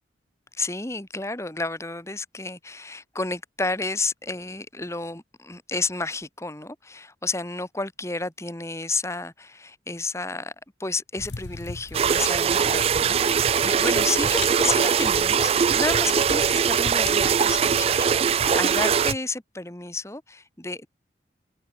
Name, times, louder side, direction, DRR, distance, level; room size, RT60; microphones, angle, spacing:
voice 1, 0.5-10.5 10.8-20.9, left 3 dB, 15° left, 1.6 m, -31 dB
sound 1, 11.2-19.2, left 3 dB, 70° left, 0.9 m, -37 dB
sound 2, 11.9-19.1, right 7 dB, 35° right, 0.3 m, -21 dB
head